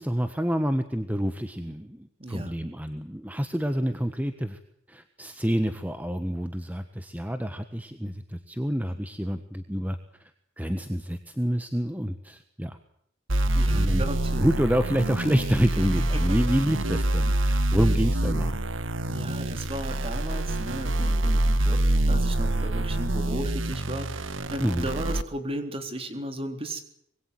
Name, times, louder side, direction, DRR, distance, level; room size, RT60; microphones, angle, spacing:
voice 1, 0.0-4.6 4.9-10.0 10.6-12.8 13.7-14.0 14.4-18.6 24.6-24.9, equal, 10° right, 9 dB, 1.4 m, -27 dB
voice 2, 2.2-2.5 13.5-14.5 15.8-16.4 19.1-26.8, right 1 dB, 30° right, 7 dB, 3.9 m, -35 dB
sound 1, 13.3-25.2, right 1 dB, 85° right, 1.6 m, -26 dB
26.0 x 22.0 x 8.0 m, 0.72 s
head